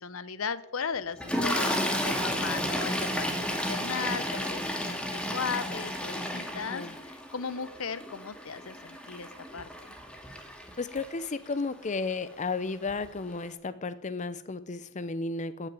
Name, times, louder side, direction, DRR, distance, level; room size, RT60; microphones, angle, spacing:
voice 1, 0.0-1.8 2.0-9.9, left 6 dB, 80° left, 16 dB, 0.8 m, -37 dB
Toilet flush, 1.2-11.5 12.4-12.6 12.9-13.1, equal, 5° left, 1.9 m, -32 dB
voice 2, 10.8-15.7, left 3 dB, 35° left, 14 dB, 0.7 m, -33 dB
13.5 x 6.7 x 9.7 m, 0.82 s
head